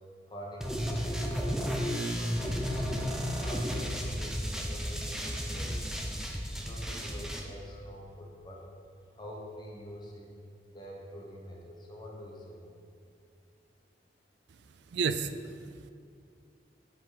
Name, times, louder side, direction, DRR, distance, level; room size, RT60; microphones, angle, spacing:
voice 1, 0.3-1.7 2.0-8.7 9.1-10.3 10.7-12.7, equal, 25° left, -2 dB, 1.1 m, -46 dB
sound 1, 0.6-7.4, equal, 5° right, 0.6 m, -33 dB
voice 2, 14.5-15.9, right 5 dB, 80° right, 11 dB, 0.4 m, -34 dB
8.2 x 5.5 x 5.1 m, 2.3 s
head